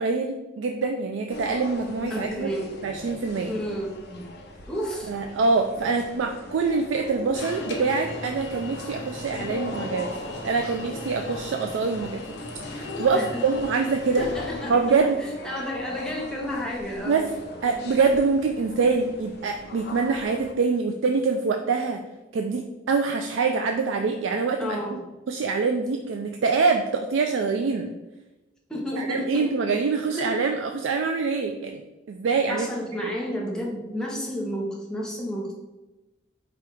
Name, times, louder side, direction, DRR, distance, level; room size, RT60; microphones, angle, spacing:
voice 1, 0.0-2.5 2.8-3.5 5.1-12.2 12.6-14.3 14.7-15.2 17.0-17.3 17.6-22.0 22.3-25.0 25.3-27.9 29.0-31.8 32.1-32.7 33.0-33.1, right 4 dB, 80° right, 4 dB, 0.3 m, -25 dB
sound 1, 1.3-20.5, left 2 dB, 60° left, 0.6 m, -39 dB
voice 2, 2.1-2.7 3.5-4.3 4.7-5.1 13.1-13.3 14.2-15.0 15.4-17.2 24.6-25.0 28.7-29.5 30.1-30.3 32.5-35.5, equal, 5° left, -3 dB, 0.8 m, -31 dB
Alarm, 7.3-14.7, left 1 dB, 85° left, 1.0 m, -39 dB
5.1 x 2.4 x 4.4 m, 1.1 s
head